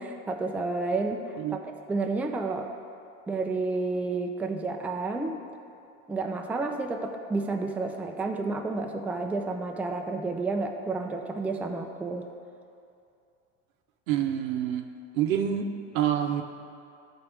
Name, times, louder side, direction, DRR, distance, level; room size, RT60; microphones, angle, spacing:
voice 1, 0.0-2.7 3.3-5.4 6.1-12.3, right 3 dB, 5° right, 3 dB, 0.4 m, -30 dB
voice 2, 14.1-14.8 15.1-15.7 15.9-16.4, right 10 dB, 85° right, 5 dB, 0.7 m, -26 dB
11.5 x 4.0 x 3.4 m, 2.5 s
hypercardioid pair, 90°, 40 cm